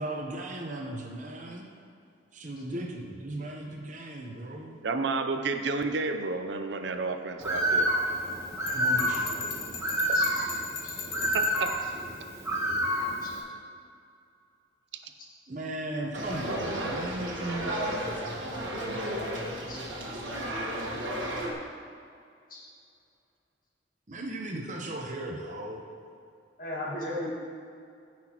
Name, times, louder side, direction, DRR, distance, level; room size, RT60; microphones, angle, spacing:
voice 1, 0.0-1.7 2.3-4.8 8.7-9.5 15.5-17.8 18.6-18.7 24.1-25.8, right 1 dB, 40° right, 0 dB, 0.9 m, -36 dB
voice 2, 4.8-7.9 11.3-11.7, right 3 dB, 65° right, 7 dB, 0.6 m, -31 dB
Bird, 7.4-13.4, equal, 15° right, 1.1 m, -29 dB
Bell, 8.7-11.9, left 5 dB, 75° left, 1.4 m, -38 dB
voice 3, 10.1-10.4 10.8-11.0 13.2-13.3 15.2-15.3 19.7-19.8 22.5-22.6 26.6-27.3, left 1 dB, 50° left, -4 dB, 1.8 m, -36 dB
sound 1, 16.1-21.5, right 1 dB, 85° right, 1.5 m, -33 dB
15.5 x 6.0 x 3.0 m, 2.4 s
head